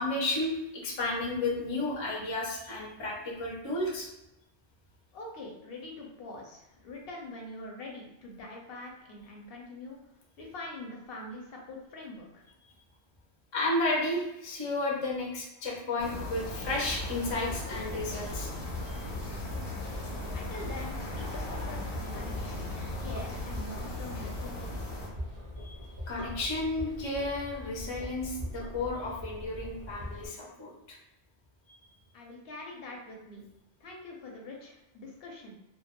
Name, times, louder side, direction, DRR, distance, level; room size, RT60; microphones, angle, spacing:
voice 1, 0.0-4.1 13.5-18.5 18.9-19.1 25.6-25.8 26.1-31.0, left 2 dB, 40° left, -3 dB, 0.4 m, -32 dB
voice 2, 5.1-10.0 10.4-12.5 20.3-22.6 23.0-24.9 32.1-33.4 33.8-35.5, left 2 dB, 65° left, -1 dB, 0.7 m, -44 dB
sound 1, 16.0-25.1, left 2 dB, 85° left, 0.9 m, -38 dB
sound 2, 16.6-30.3, equal, 25° right, 0.5 m, -42 dB
2.3 x 2.2 x 2.9 m, 0.88 s
omnidirectional pair, 1.1 m